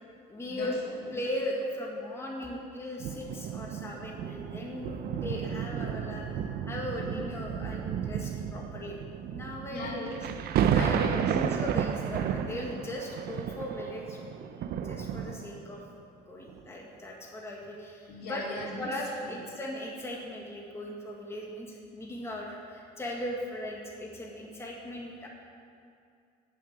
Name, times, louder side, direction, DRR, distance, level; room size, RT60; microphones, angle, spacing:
voice 1, 0.3-0.7 1.1-4.9 5.2-6.3 6.7-9.0 9.3-10.2 10.7-14.2 14.6-15.8 16.3-18.4 18.8-25.3, left 1 dB, 15° left, -2 dB, 1.8 m, -38 dB
sound 1, 3.0-15.8 16.5-16.6, right 8 dB, 70° right, 0.6 m, -32 dB
voice 2, 7.1-7.6 9.7-10.1 10.7-11.3 18.1-18.9 19.2-19.3 22.6-22.8, left 2 dB, 70° left, -3 dB, 2.8 m, -40 dB
10.5 x 7.2 x 8.1 m, 2.4 s
cardioid pair, 110°, 17 cm